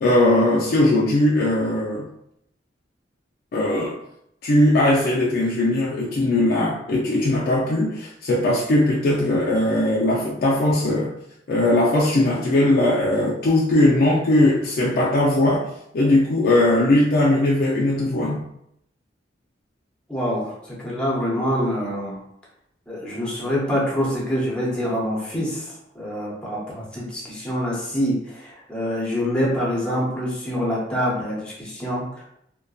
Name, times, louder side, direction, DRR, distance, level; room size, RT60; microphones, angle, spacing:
voice 1, 0.0-2.1 3.5-4.0 4.4-11.1 11.5-15.7 15.9-18.4, left 1 dB, 55° left, -4 dB, 0.4 m, -19 dB
voice 2, 20.1-22.2 22.9-25.7 25.9-32.2, equal, 5° left, -5 dB, 0.6 m, -25 dB
2.5 x 2.2 x 2.3 m, 0.75 s
head